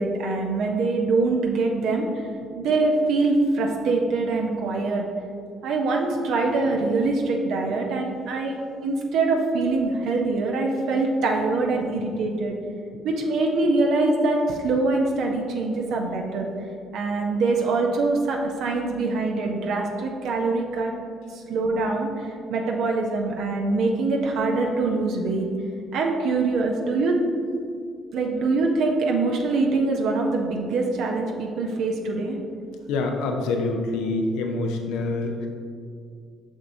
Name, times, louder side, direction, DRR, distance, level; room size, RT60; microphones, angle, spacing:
voice 1, 0.0-2.1 2.6-5.0 5.6-8.6 8.8-12.6 13.0-16.5 16.9-20.9 21.3-25.5 25.9-27.2 28.1-32.4, right 3 dB, 70° right, 1 dB, 0.6 m, -24 dB
voice 2, 32.9-35.5, left 3 dB, 80° left, 3 dB, 0.6 m, -26 dB
6.2 x 6.1 x 2.6 m, 2.3 s
hypercardioid pair, 55°, 0 cm